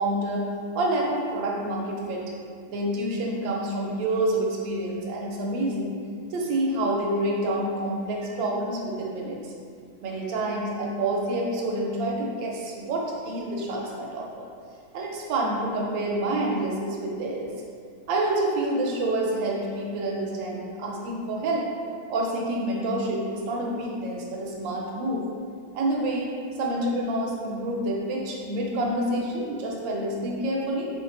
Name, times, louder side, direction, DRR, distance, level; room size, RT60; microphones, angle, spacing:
voice 1, 0.0-2.2 2.7-6.0 6.3-9.4 10.0-14.4 14.9-17.5 18.1-21.7 22.1-25.2 25.7-26.3 26.6-30.9, right 1 dB, 80° right, -1 dB, 1.3 m, -28 dB
3.0 x 2.6 x 3.7 m, 2.2 s
omnidirectional pair, 2.1 m